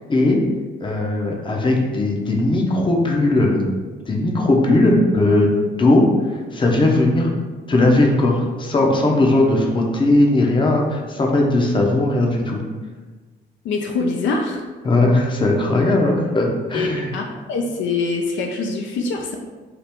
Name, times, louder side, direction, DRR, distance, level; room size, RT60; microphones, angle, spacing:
voice 1, 0.1-0.4 0.8-3.7 4.1-6.1 6.5-7.3 7.7-12.6 14.8-17.1, left 2 dB, 25° left, 0 dB, 0.6 m, -18 dB
voice 2, 13.6-14.6 16.7-16.9 17.1-19.4, left 3 dB, 75° left, 2 dB, 0.4 m, -24 dB
2.9 x 2.4 x 3.4 m, 1.3 s
cardioid pair, 90°, 20 cm